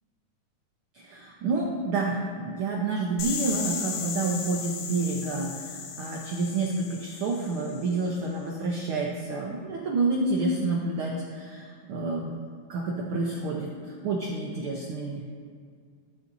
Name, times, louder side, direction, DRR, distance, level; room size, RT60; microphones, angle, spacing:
voice 1, 0.9-12.3 12.7-15.2, right 3 dB, 90° right, -1 dB, 1.1 m, -29 dB
sound 1, 3.2-8.0, left 6 dB, 75° left, 2.2 m, -36 dB
13.0 x 7.8 x 2.7 m, 2.1 s
omnidirectional pair, 3.6 m